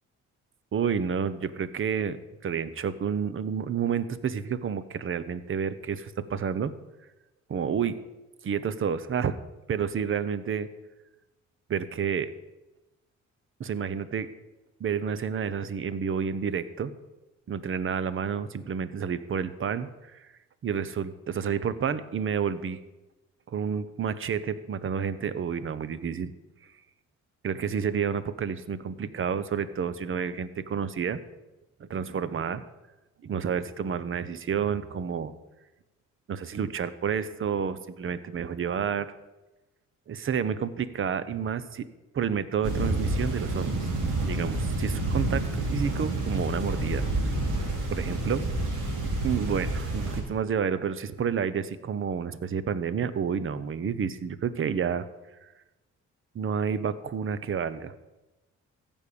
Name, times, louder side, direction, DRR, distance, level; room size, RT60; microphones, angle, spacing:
voice 1, 0.7-2.2 2.4-6.7 7.5-8.0 8.4-9.4 9.7-10.7 11.7-12.3 13.6-14.3 14.8-16.9 17.5-20.2 20.6-22.8 23.5-26.3 27.4-31.2 31.8-32.6 33.2-35.3 36.3-39.1 40.1-41.9 42.1-43.7 44.2-47.1 47.9-48.4 49.2-55.1 55.4-55.5 56.3-57.9, right 7 dB, 45° right, 14 dB, 0.8 m, -30 dB
sound 1, 42.6-50.2, right 2 dB, 80° right, 3.2 m, -29 dB
15.0 x 5.4 x 8.5 m, 1.1 s
cardioid pair, 90°, 30 cm